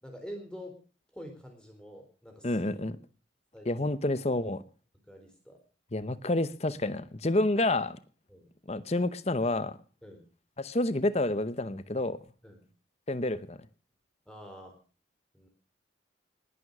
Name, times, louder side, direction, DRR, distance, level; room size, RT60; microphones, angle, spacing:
voice 1, 0.0-0.8 1.1-2.7 3.5-3.9 5.1-5.6 8.3-8.5 10.0-10.2 12.4-12.7 14.3-14.8 15.3-15.5, equal, 5° left, 3.6 m, -46 dB
voice 2, 2.4-3.0 3.7-4.6 5.9-8.0 8.7-9.8 10.6-12.2 13.1-13.6, left 2 dB, 35° left, 0.8 m, -29 dB
19.5 x 11.0 x 6.5 m
head